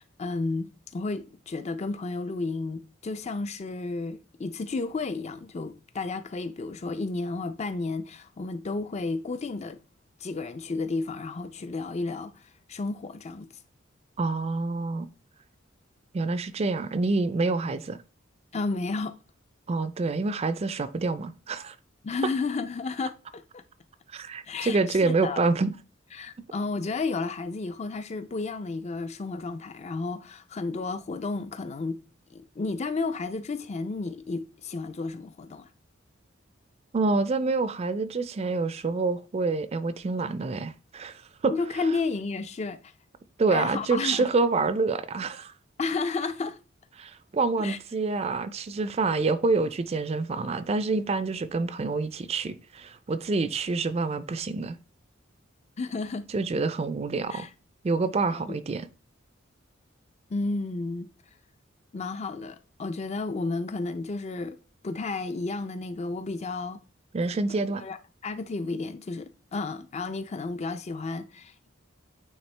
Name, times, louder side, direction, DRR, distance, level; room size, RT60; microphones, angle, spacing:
voice 1, 0.0-9.8 10.2-13.5 18.5-19.2 22.0-23.6 24.5-25.4 26.1-32.0 32.3-35.7 41.5-42.8 43.5-44.3 45.8-46.6 47.6-47.8 55.8-56.3 57.3-57.5 60.3-61.1 61.9-64.6 64.8-66.8 67.8-68.0 68.2-71.7, left 3 dB, 35° left, 0.4 m, -32 dB
voice 2, 14.2-15.1 16.1-18.0 19.7-21.8 24.1-25.7 36.9-41.5 43.4-45.5 47.0-54.8 56.3-57.5 57.8-58.9 67.1-67.8, right 3 dB, 30° right, 0.4 m, -27 dB
8.8 x 3.5 x 3.3 m
head